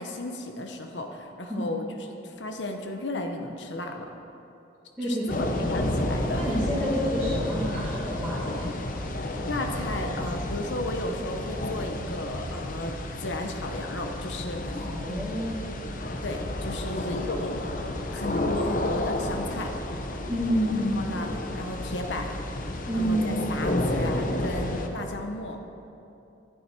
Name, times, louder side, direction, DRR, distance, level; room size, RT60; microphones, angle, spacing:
voice 1, 0.0-4.1 5.0-6.4 9.5-15.2 16.2-17.6 18.1-19.7 20.9-21.3 21.6-22.3 22.9-25.6, left 1 dB, 85° left, 4 dB, 1.0 m, -34 dB
voice 2, 5.0-5.7 6.3-8.7 14.8-15.6 16.9-17.2 20.3-21.2 22.8-23.4, equal, 5° right, -13 dB, 2.1 m, -29 dB
sound 1, 5.3-24.9, left 1 dB, 45° left, 0.8 m, -31 dB
11.0 x 10.0 x 4.6 m, 2.7 s
head